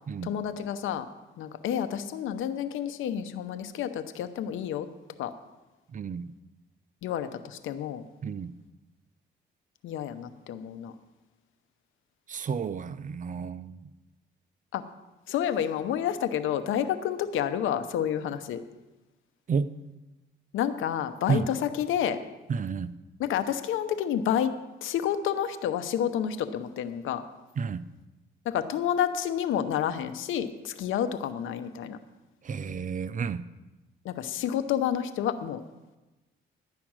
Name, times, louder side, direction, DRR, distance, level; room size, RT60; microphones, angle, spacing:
voice 1, 0.2-1.1 1.4-4.9 5.2-5.3 7.0-8.0 9.8-10.9 14.7-14.8 15.3-18.6 20.5-22.2 23.2-24.5 24.8-27.2 28.4-32.0 34.0-35.6, left 9 dB, 80° left, 11 dB, 0.9 m, -29 dB
voice 2, 5.9-6.3 8.2-8.5 12.3-13.8 19.5-19.7 21.3-21.5 22.5-22.9 27.6-27.8 32.4-33.4, right 6 dB, 40° right, 14 dB, 0.6 m, -31 dB
11.5 x 6.0 x 8.8 m, 1.1 s
cardioid pair, 90°, 20 cm